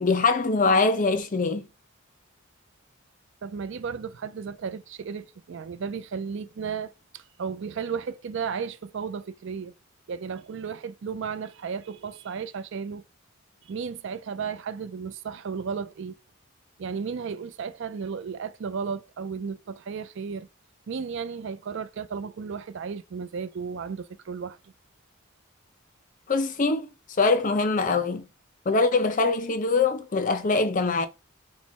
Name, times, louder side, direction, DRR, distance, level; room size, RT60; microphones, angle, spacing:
voice 1, 0.0-1.7 26.3-26.9 27.2-28.2 28.7-31.1, left 3 dB, 40° left, 0.5 m, -23 dB
voice 2, 3.4-9.7 10.1-13.0 13.6-16.2 16.8-20.5 20.9-24.7, right 6 dB, 60° right, 0.4 m, -34 dB
4.4 x 2.1 x 4.2 m
head